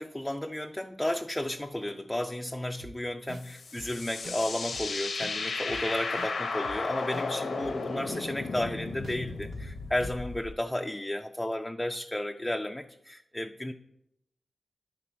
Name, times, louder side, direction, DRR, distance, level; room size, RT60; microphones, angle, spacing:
voice 1, 0.0-13.7, left 1 dB, 10° left, 5 dB, 0.3 m, -33 dB
sound 1, 2.8-2.9 3.3-3.4 3.8-3.9 4.2-4.4 4.7-4.9 5.2-5.3 5.7-5.8 6.2-6.3 6.6-6.8 7.1-7.3 7.6-7.7 8.1-8.2 8.6-8.7 9.0-9.2 9.5-9.7 10.0-10.1, right 3 dB, 75° right, 0.5 m, -45 dB
sound 2, 3.3-10.5, left 4 dB, 75° left, 0.6 m, -35 dB
10.0 x 4.0 x 5.6 m, 0.82 s
wide cardioid pair, 105°, 0 cm